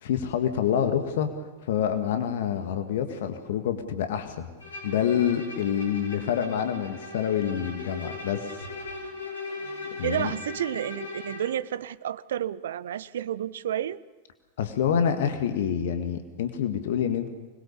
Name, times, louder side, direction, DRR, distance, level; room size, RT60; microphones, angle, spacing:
voice 1, 0.0-4.5 4.8-8.5 10.0-10.3 14.6-17.3, left 8 dB, 55° left, 7 dB, 1.8 m, -27 dB
Bowed string instrument, 4.6-11.6, left 3 dB, 75° left, 5.2 m, -39 dB
voice 2, 10.0-14.0, right 10 dB, 60° right, 19 dB, 0.7 m, -30 dB
25.0 x 21.0 x 7.0 m, 1.2 s
figure-of-eight pair, 90°, 0 cm